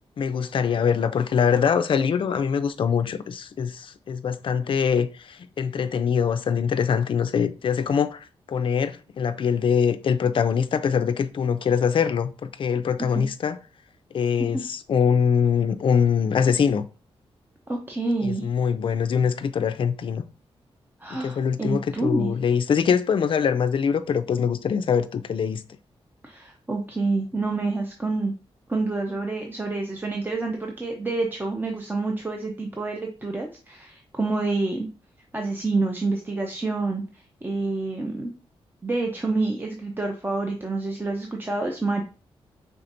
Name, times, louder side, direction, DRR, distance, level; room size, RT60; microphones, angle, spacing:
voice 1, 0.2-13.6 14.1-16.8 18.2-20.2 21.2-25.6, left 7 dB, 55° left, 0.4 m, -23 dB
voice 2, 17.7-18.5 21.0-22.3 26.2-28.3 28.7-34.9 35.3-37.0 37.4-38.3 38.8-42.0, right 3 dB, 20° right, 0.6 m, -27 dB
5.7 x 3.5 x 2.6 m
wide cardioid pair, 105°, 10 cm